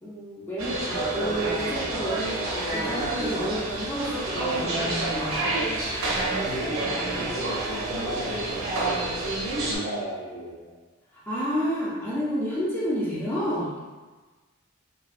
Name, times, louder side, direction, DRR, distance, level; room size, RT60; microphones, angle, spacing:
voice 1, 0.0-5.4 6.8-7.3 11.1-13.7, equal, 10° left, -7 dB, 0.4 m, -30 dB
sound 1, 0.6-9.8, right 2 dB, 80° right, 0.5 m, -28 dB
voice 2, 6.3-9.1 9.6-10.7, right 1 dB, 55° left, -9 dB, 0.6 m, -35 dB
2.5 x 2.1 x 2.3 m, 1.3 s
head